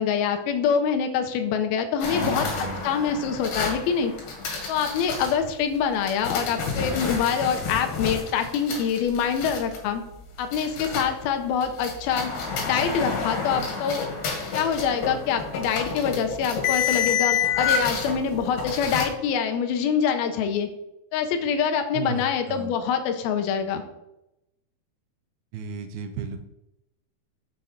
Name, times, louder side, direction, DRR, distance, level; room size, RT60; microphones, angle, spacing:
voice 1, 0.0-2.5 2.8-4.1 4.7-10.0 10.4-12.3 12.6-14.0 14.5-20.7 21.1-23.8, left 7 dB, 80° left, 6 dB, 2.5 m, -25 dB
sound 1, 2.0-5.3 6.1-11.2 11.6-19.0, left 6 dB, 60° left, 3.1 m, -29 dB
voice 2, 2.2-2.8 21.9-22.7 25.5-26.4, right 6 dB, 80° right, 7 dB, 2.5 m, -34 dB
7.0 x 5.6 x 4.9 m, 0.89 s
omnidirectional pair, 4.5 m